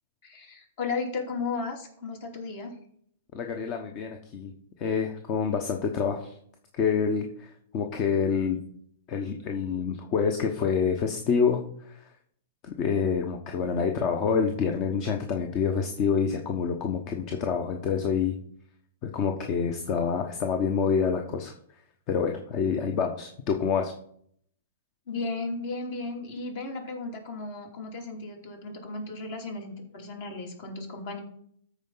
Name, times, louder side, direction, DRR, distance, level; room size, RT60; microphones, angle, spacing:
voice 1, 0.2-2.7 25.1-31.2, left 3 dB, 55° left, 1 dB, 2.9 m, -35 dB
voice 2, 3.3-4.5 4.8-6.4 6.7-8.6 9.1-11.6 11.9-12.0 12.6-18.3 19.0-21.5 22.1-23.9, left 6 dB, 40° left, 4 dB, 1.0 m, -27 dB
13.5 x 4.6 x 4.0 m, 0.64 s
hypercardioid pair, 110°, 0 cm